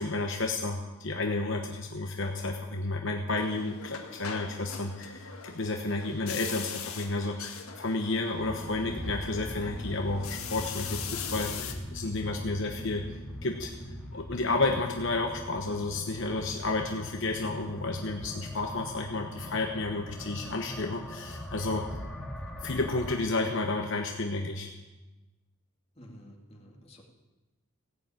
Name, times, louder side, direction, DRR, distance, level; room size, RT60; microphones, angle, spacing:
voice 1, 0.0-13.1 13.4-13.7 14.1-21.9 22.6-24.7, left 2 dB, 60° left, 3 dB, 1.0 m, -31 dB
sound 1, 3.4-11.7, left 7 dB, 85° left, 1.6 m, -41 dB
sound 2, 8.3-23.2, equal, 5° left, 2.6 m, -41 dB
voice 2, 26.0-27.0, equal, 30° left, -1 dB, 2.5 m, -51 dB
16.0 x 7.0 x 9.0 m, 1.1 s
head